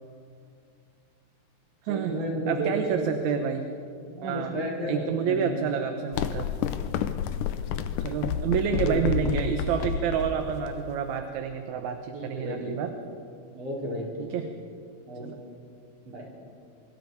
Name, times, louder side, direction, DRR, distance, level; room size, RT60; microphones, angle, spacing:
voice 1, 1.9-3.5 4.1-5.6 7.0-7.2 7.9-8.2 8.5-9.3 9.8-9.9 12.1-12.8 13.5-14.1 15.1-15.4 16.0-16.3, right 1 dB, 50° right, -3 dB, 5.4 m, -33 dB
voice 2, 2.5-3.6 4.2-4.6 4.9-6.5 8.0-12.9 14.2-14.5 15.2-15.4, right 7 dB, 70° right, 6 dB, 2.3 m, -29 dB
sound 1, 6.1-11.2, left 8 dB, 90° left, 2.4 m, -30 dB
28.0 x 24.0 x 4.7 m, 2.4 s
omnidirectional pair, 3.6 m